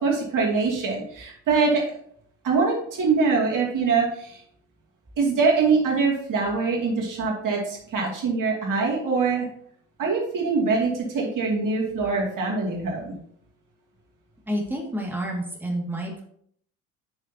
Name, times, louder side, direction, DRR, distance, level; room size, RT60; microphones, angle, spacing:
voice 1, 0.0-1.8 2.4-4.4 5.2-9.5 10.0-13.1, right 4 dB, 45° right, -2 dB, 2.4 m, -23 dB
voice 2, 14.5-16.2, equal, 5° right, -2 dB, 2.1 m, -29 dB
9.1 x 6.4 x 2.8 m, 0.64 s
hypercardioid pair, 55°, 43 cm